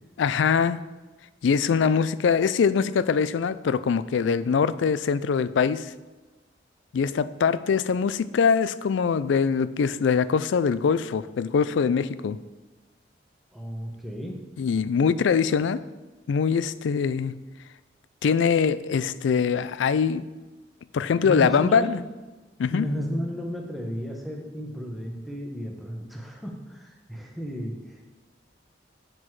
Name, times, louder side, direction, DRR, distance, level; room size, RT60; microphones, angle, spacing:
voice 1, 0.2-0.8 1.4-5.9 6.9-12.4 14.6-15.8 16.3-17.3 18.2-20.3 20.9-22.0 22.6-22.9, left 6 dB, 75° left, 16 dB, 0.3 m, -23 dB
voice 2, 13.5-14.5 21.2-22.0 22.7-28.1, equal, ahead, 0 dB, 0.9 m, -33 dB
7.7 x 6.1 x 4.7 m, 1.2 s
head